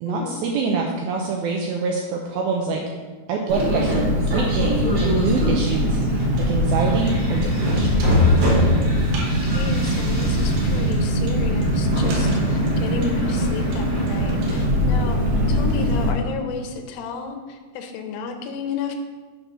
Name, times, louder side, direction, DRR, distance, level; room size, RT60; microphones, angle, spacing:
voice 1, 0.0-2.8 3.3-6.0 6.5-8.1, right 4 dB, 90° right, 0 dB, 2.1 m, -25 dB
sound 1, 3.5-14.6, left 1 dB, 40° right, 2.2 m, -25 dB
Car, 3.5-16.1, equal, 70° right, 2.9 m, -22 dB
voice 2, 9.3-19.0, left 5 dB, 75° left, 5 dB, 2.3 m, -32 dB
9.0 x 4.1 x 6.0 m, 1.4 s
omnidirectional pair, 4.9 m